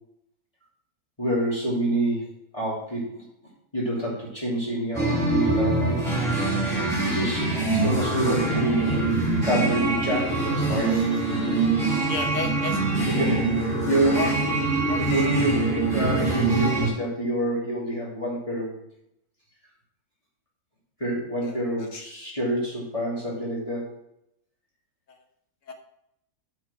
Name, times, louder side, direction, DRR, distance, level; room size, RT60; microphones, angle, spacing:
voice 1, 1.2-2.2 2.5-3.2 3.7-6.0 7.0-8.8 9.1-11.2 13.1-18.8 21.0-23.9, right 1 dB, 20° left, -6 dB, 2.8 m, -27 dB
sound 1, 4.9-16.9, right 3 dB, ahead, 3.7 m, -24 dB
voice 2, 12.1-13.1 14.1-14.3 14.9-15.0 21.4-22.0 25.7-25.8, left 4 dB, 60° left, 5 dB, 1.5 m, -33 dB
8.2 x 5.8 x 6.0 m, 0.79 s
omnidirectional pair, 1.6 m